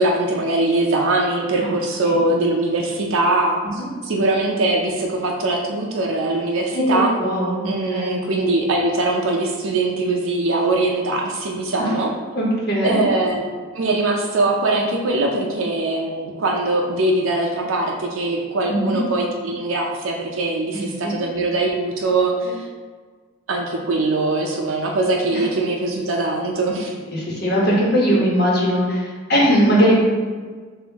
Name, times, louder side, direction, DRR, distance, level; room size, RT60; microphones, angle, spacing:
voice 1, 0.0-7.1 7.6-12.1 12.8-13.4 13.7-22.6 23.5-26.9, right 2 dB, 70° right, 0 dB, 0.5 m, -21 dB
voice 2, 6.7-8.2 11.8-11.9 12.3-13.0 18.7-19.0 20.7-21.2 25.3-25.4 27.1-29.9, equal, 50° left, -5 dB, 1.2 m, -20 dB
5.5 x 2.5 x 3.5 m, 1.5 s
head